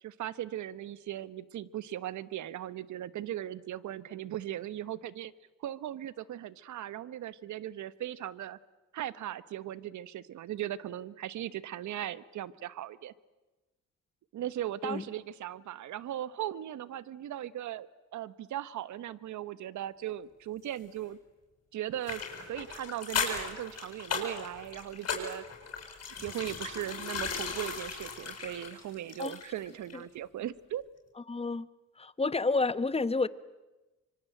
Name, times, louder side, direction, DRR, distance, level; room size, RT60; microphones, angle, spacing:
voice 1, 0.0-5.3 5.6-8.6 8.9-13.1 14.3-21.2 21.7-25.4 26.2-30.8, right 12 dB, 70° right, 1.2 m, -38 dB
sound 1, 22.0-29.6 29.9-30.0, left 5 dB, 55° left, 7.5 m, -37 dB
voice 2, 31.3-31.7 32.0-33.3, left 3 dB, 20° left, 1.1 m, -29 dB
25.0 x 24.0 x 9.1 m
cardioid pair, 90°, 30 cm